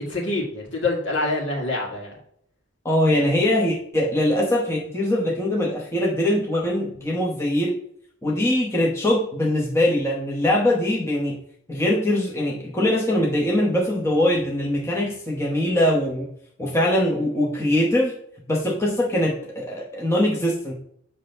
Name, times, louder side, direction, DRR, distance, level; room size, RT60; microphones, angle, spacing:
voice 1, 0.1-2.2, left 2 dB, 65° left, -1 dB, 2.2 m, -26 dB
voice 2, 2.8-7.7 8.2-11.4 11.7-16.3 16.6-18.2 18.5-20.7, left 1 dB, 15° left, -3 dB, 1.1 m, -22 dB
7.5 x 3.4 x 5.3 m, 0.67 s
head